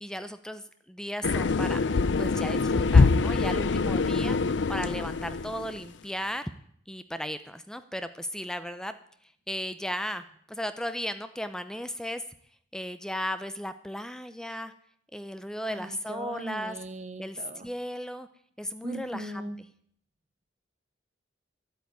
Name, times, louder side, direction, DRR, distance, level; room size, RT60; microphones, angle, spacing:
voice 1, 0.0-4.4 4.7-6.5 6.9-8.9 9.5-12.2 12.7-14.7 15.1-16.8 17.2-18.3 18.6-19.7, equal, 5° left, 11 dB, 0.6 m, -35 dB
sound 1, 1.2-5.9, left 4 dB, 75° left, 0.6 m, -24 dB
voice 2, 15.7-17.7 18.8-19.6, right 1 dB, 40° right, 10 dB, 1.1 m, -39 dB
12.0 x 8.3 x 9.3 m, 0.64 s
head